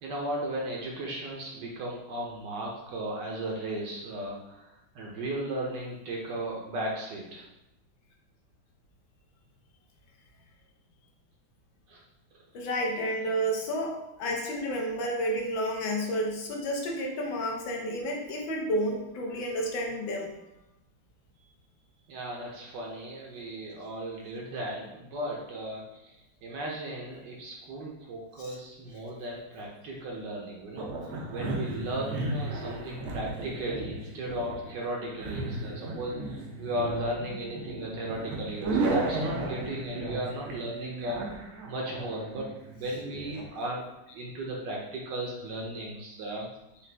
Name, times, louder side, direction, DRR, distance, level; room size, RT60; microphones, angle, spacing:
voice 1, 0.0-4.6 4.9-7.4 11.9-12.0 13.2-13.4 22.1-26.1 26.4-30.9 31.3-41.4 41.7-43.8 44.1-46.5, right 1 dB, 65° right, -2 dB, 1.2 m, -36 dB
voice 2, 12.5-20.3 28.4-28.6, equal, 75° left, 0 dB, 1.4 m, -31 dB
sound 1, 30.8-43.4, right 2 dB, 85° right, 1.6 m, -35 dB
4.9 x 2.5 x 3.3 m, 0.91 s
omnidirectional pair, 2.2 m